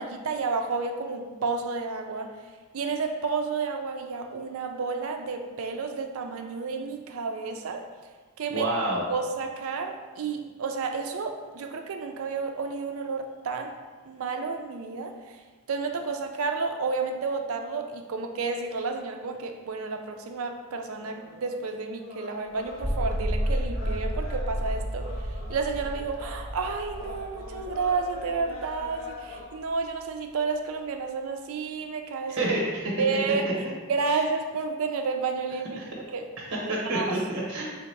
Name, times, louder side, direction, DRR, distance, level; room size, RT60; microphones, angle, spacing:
voice 1, 0.0-2.3 2.7-7.8 8.4-8.7 9.1-13.7 14.1-15.1 15.7-25.1 25.5-32.5 33.0-33.5 33.9-35.8 36.1-36.2 36.9-37.2, right 4 dB, 70° right, 4 dB, 0.4 m, -31 dB
voice 2, 8.5-9.0 32.3-33.0 34.1-34.2 35.8-35.9 36.7-37.6, right 1 dB, 55° right, -4 dB, 0.9 m, -28 dB
sound 1, 20.9-29.4, left 2 dB, 65° left, 0.8 m, -44 dB
sound 2, 22.6-29.1, equal, 5° left, 1.4 m, -32 dB
3.4 x 2.8 x 4.4 m, 1.4 s
head